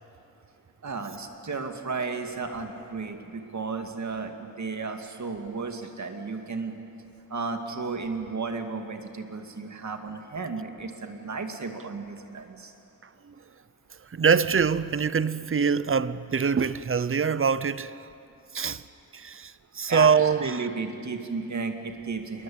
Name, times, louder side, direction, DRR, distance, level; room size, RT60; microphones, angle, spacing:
voice 1, 0.8-6.8 7.3-12.7 18.6-18.7 19.9-22.4, right 4 dB, 55° right, 2.3 m, -34 dB
voice 2, 14.1-18.1 18.5-18.8 19.1-20.7, right 6 dB, 40° right, 0.7 m, -24 dB
28.5 x 21.0 x 8.7 m
wide cardioid pair, 150°, 34 cm